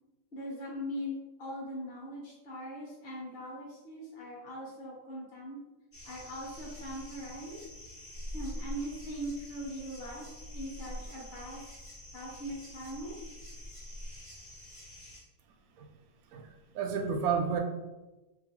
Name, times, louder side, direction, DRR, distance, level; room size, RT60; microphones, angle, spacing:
voice 1, 0.3-5.6 6.0-7.6 8.3-11.7 12.1-13.2, equal, 50° left, -4 dB, 0.7 m, -41 dB
sound 1, 5.9-15.2, equal, 20° left, 1.4 m, -45 dB
voice 2, 16.3-17.6, right 6 dB, 80° right, 3 dB, 0.8 m, -31 dB
3.0 x 2.4 x 4.2 m, 1.1 s
omnidirectional pair, 2.0 m